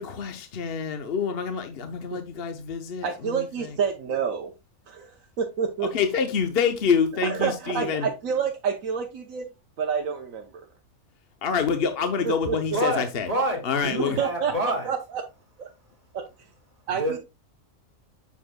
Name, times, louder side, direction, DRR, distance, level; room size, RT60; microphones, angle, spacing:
voice 1, 0.0-3.7 5.9-8.1 11.4-13.3 13.6-14.2, left 6 dB, 50° left, 1.0 m, -27 dB
voice 2, 3.0-4.5 4.9-5.9 7.2-9.4 9.8-10.6 12.5-12.6 14.2-15.2 15.6-15.7 16.9-17.2, right 6 dB, 80° right, 1.3 m, -28 dB
voice 3, 12.7-14.9 16.9-17.2, right 1 dB, 30° right, 2.6 m, -28 dB
7.6 x 7.1 x 2.3 m
omnidirectional pair, 1.4 m